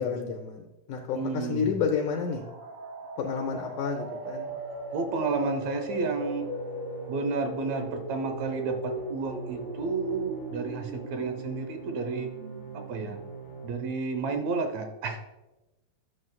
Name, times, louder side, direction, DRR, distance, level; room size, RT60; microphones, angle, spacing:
voice 1, 0.0-2.4 3.2-4.5, left 6 dB, 75° left, 2 dB, 2.1 m, -30 dB
voice 2, 1.1-1.8 4.9-6.5 7.1-12.3 12.9-13.2 13.6-15.2, right 4 dB, 70° right, 6 dB, 1.7 m, -31 dB
sound 1, 2.0-13.7, equal, 55° right, 1.7 m, -39 dB
sound 2, 4.3-13.7, right 5 dB, 55° left, 1.0 m, -44 dB
12.5 x 7.0 x 2.3 m, 1.0 s
omnidirectional pair, 3.9 m